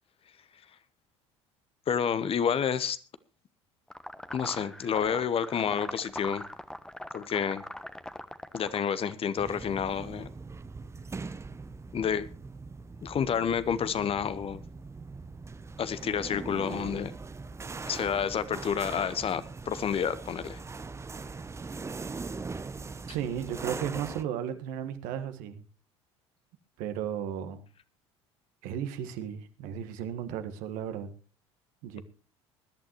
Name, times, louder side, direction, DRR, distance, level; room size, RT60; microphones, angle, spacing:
voice 1, 1.9-3.0 4.3-6.4 7.1-7.6 8.5-10.3 11.9-12.3 13.0-14.6 15.8-17.1 17.9-20.6, left 7 dB, 40° left, 1.0 m, -29 dB
sound 1, 3.9-9.1, left 1 dB, 5° left, 1.1 m, -41 dB
sound 2, 9.4-24.2, right 4 dB, 20° right, 0.7 m, -41 dB
voice 2, 23.1-25.6 26.8-27.6 28.6-31.1 31.8-32.0, right 9 dB, 65° right, 1.5 m, -34 dB
21.0 x 11.5 x 3.1 m
hypercardioid pair, 65°, 15 cm